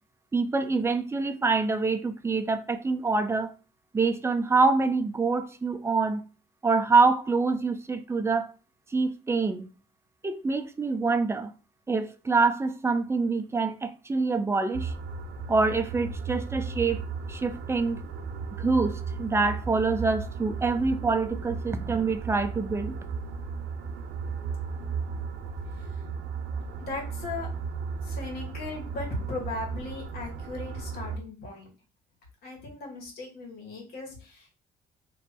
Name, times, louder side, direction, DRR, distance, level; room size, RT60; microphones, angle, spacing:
voice 1, 0.3-3.5 3.9-6.2 6.6-8.5 8.9-9.6 10.2-11.5 11.9-14.9 15.5-17.0 17.3-18.0 18.6-22.9, right 4 dB, 15° right, 0.5 m, -25 dB
sound 1, 14.7-31.2, right 5 dB, 80° right, 0.7 m, -35 dB
voice 2, 26.8-27.5 28.0-31.7 32.4-34.6, left 2 dB, 65° left, 1.9 m, -37 dB
3.1 x 2.7 x 4.5 m
cardioid pair, 110°, 17 cm